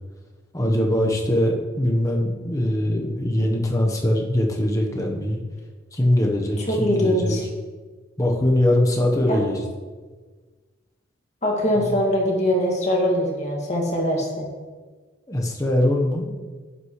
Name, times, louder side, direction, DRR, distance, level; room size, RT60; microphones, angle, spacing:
voice 1, 0.5-5.4 5.9-7.4 8.2-9.6 11.8-11.9 15.3-16.3, left 1 dB, 15° left, 0 dB, 1.1 m, -22 dB
voice 2, 6.7-7.4 9.3-9.4 11.4-14.5, equal, 35° left, -2 dB, 2.1 m, -22 dB
10.5 x 8.3 x 3.2 m, 1.4 s
head